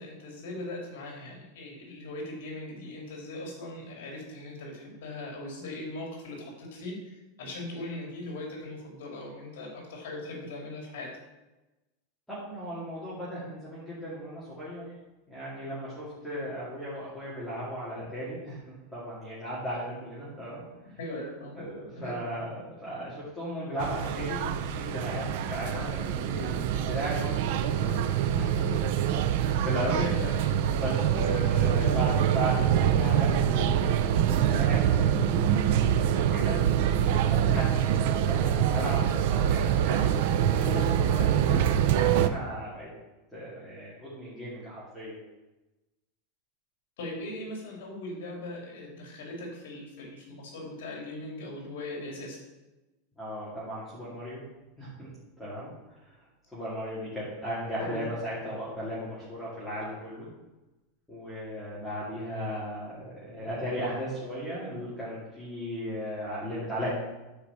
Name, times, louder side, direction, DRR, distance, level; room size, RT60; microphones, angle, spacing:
voice 1, 0.0-11.1 21.0-21.6 21.9-22.2 29.9-30.5 31.7-32.0 47.0-52.4 57.8-58.1, left 2 dB, 65° left, 0 dB, 3.1 m, -39 dB
voice 2, 12.3-14.8 15.3-18.6 18.9-20.6 21.6-29.0 29.3-30.1 30.7-36.6 37.1-40.0 40.5-42.9 43.3-45.2 53.2-54.4 54.8-55.1 55.4-55.7 56.0-56.1 56.5-60.3 61.1-66.9, equal, ahead, -10 dB, 2.5 m, -36 dB
sound 1, 23.8-39.8, left 5 dB, 90° left, 1.7 m, -49 dB
sound 2, 23.8-42.3, right 9 dB, 50° right, 0.6 m, -25 dB
11.5 x 4.9 x 6.9 m, 1.1 s
supercardioid pair, 180°, 0 cm